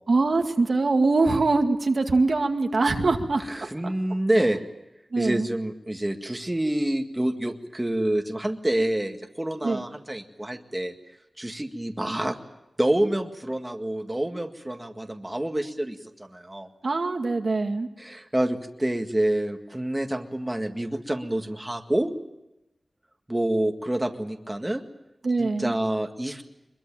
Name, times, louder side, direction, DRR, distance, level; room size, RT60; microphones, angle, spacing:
voice 1, 0.1-3.4 3.8-3.9 5.1-5.5 9.6-9.8 16.8-17.9 25.2-25.7, right 3 dB, 65° right, 4 dB, 2.0 m, -23 dB
voice 2, 3.5-4.6 5.2-10.9 11.4-12.4 12.8-16.7 18.0-22.1 23.3-24.8 25.4-26.4, right 1 dB, 15° right, 4 dB, 1.9 m, -27 dB
23.5 x 22.5 x 8.9 m, 0.93 s
wide cardioid pair, 75°, 0 cm